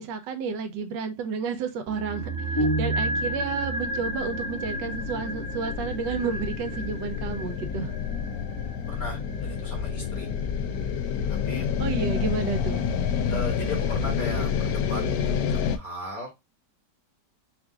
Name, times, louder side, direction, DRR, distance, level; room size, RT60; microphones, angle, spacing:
voice 1, 0.0-7.9 11.8-12.8, right 5 dB, 85° right, 1.4 m, -31 dB
sound 1, 1.9-12.1 12.4-12.5, right 1 dB, 45° right, 1.1 m, -34 dB
sound 2, 2.6-3.6, equal, 20° left, 0.8 m, -28 dB
sound 3, 3.2-15.8, left 7 dB, 70° left, 0.9 m, -29 dB
voice 2, 8.9-10.3 11.5-11.6 13.3-15.3 15.7-16.3, left 2 dB, 50° left, 2.3 m, -36 dB
4.4 x 2.5 x 3.4 m
omnidirectional pair, 1.9 m